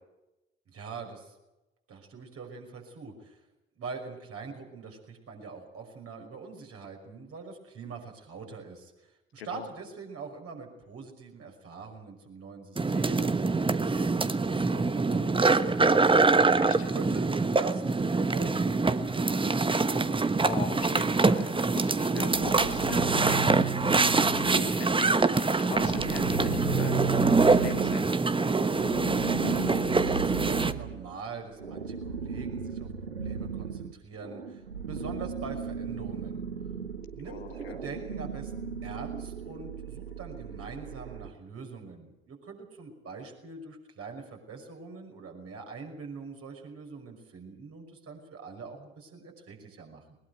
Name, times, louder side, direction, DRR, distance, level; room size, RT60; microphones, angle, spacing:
voice 1, 0.7-1.4 1.9-3.4 3.8-16.1 16.9-20.0 29.4-36.4 37.1-50.2, right 4 dB, 50° right, 2 dB, 5.8 m, -43 dB
sound 1, 12.8-30.7, right 3 dB, 15° right, 1.1 m, -25 dB
voice 2, 16.6-16.9 20.5-23.6 23.8-28.1 37.2-37.8, left 7 dB, 80° left, 7 dB, 1.6 m, -41 dB
sound 2, 22.3-24.8 25.1-41.3, right 5 dB, 90° right, 1.0 m, -36 dB
21.0 x 20.5 x 8.0 m, 0.99 s
figure-of-eight pair, 45°, 31 cm